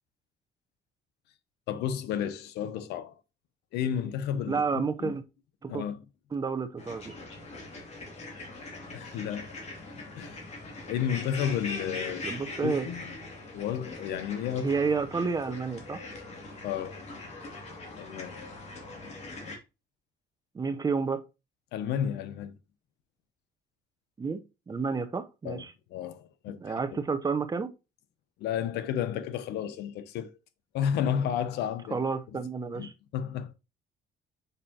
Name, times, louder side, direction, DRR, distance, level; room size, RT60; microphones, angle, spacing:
voice 1, 1.7-3.1 3.7-5.2 5.7-6.0 8.9-9.5 10.2-10.4 10.9-13.0 13.5-14.7 16.6-17.0 18.0-18.4 21.7-22.6 25.4-25.6 25.9-27.0 28.4-30.3 30.7-32.0 32.8-33.5, left 9 dB, 80° left, 0.9 m, -32 dB
voice 2, 4.5-5.2 5.6-5.8 6.3-7.1 12.2-12.9 14.6-16.0 20.5-21.2 24.2-24.4 24.7-25.7 26.6-27.7 31.9-32.9, right 5 dB, 20° right, 0.8 m, -30 dB
sound 1, 6.8-19.6, left 2 dB, 40° left, 2.7 m, -42 dB
6.8 x 5.1 x 2.9 m
cardioid pair, 110°, 17 cm